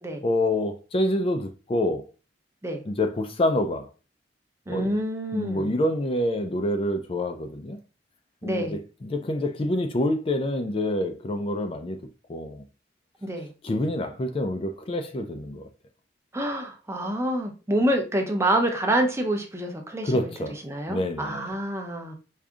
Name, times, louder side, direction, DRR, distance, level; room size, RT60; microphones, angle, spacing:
voice 1, 0.2-2.1 2.9-3.9 4.7-5.0 5.3-7.8 8.4-12.0 12.3-12.6 13.6-15.6 20.0-20.6 20.9-21.5, left 1 dB, 30° left, 0.4 m, -27 dB
voice 2, 4.7-5.7 8.4-8.8 13.2-13.5 16.3-20.3 20.6-22.1, right 1 dB, 15° right, 0.6 m, -27 dB
4.8 x 2.6 x 2.3 m
head